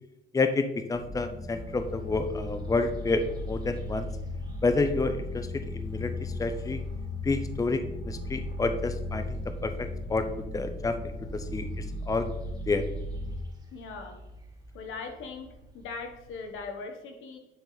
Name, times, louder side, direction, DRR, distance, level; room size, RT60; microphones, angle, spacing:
voice 1, 0.3-4.1 4.6-6.8 7.2-12.3 12.7-12.8, left 3 dB, 15° left, 9 dB, 0.6 m, -29 dB
sound 1, 0.9-13.4, left 1 dB, 55° left, 2.6 m, -36 dB
sound 2, 1.5-16.6, equal, 20° right, 1.9 m, -49 dB
voice 2, 13.7-14.2 14.7-15.5 15.7-17.4, left 4 dB, 85° left, 4 dB, 1.3 m, -39 dB
10.0 x 4.3 x 4.0 m, 0.98 s
cardioid pair, 90°, 20 cm